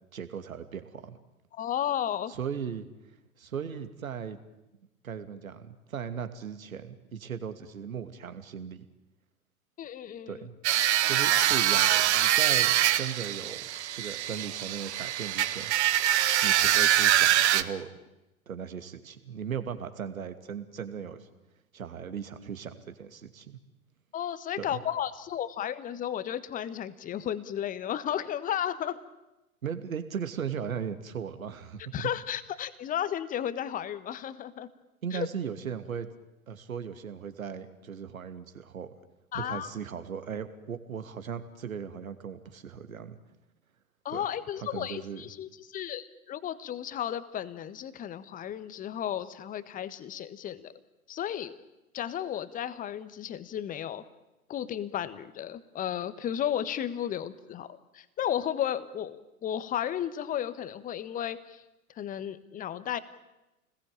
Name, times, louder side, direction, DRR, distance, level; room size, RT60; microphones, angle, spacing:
voice 1, 0.1-1.2 2.3-2.9 3.4-4.4 5.0-8.8 10.3-10.5 11.0-13.6 14.0-15.7 16.4-17.9 18.5-21.3 21.7-23.6 24.6-24.8 29.6-32.1 35.0-36.1 36.5-38.9 39.3-43.2 44.1-44.2 44.6-45.2, right 7 dB, 70° right, 10 dB, 2.7 m, -37 dB
voice 2, 1.5-2.3 9.8-10.5 24.1-29.0 31.9-34.7 35.1-35.3 39.3-39.7 44.0-50.7 51.1-51.6 51.9-54.0 54.5-61.6 62.0-63.0, left 10 dB, 20° left, 14 dB, 1.4 m, -33 dB
sound 1, 10.6-17.6, right 12 dB, 50° right, 1.5 m, -24 dB
29.5 x 20.5 x 8.9 m, 0.99 s
figure-of-eight pair, 110°, 43 cm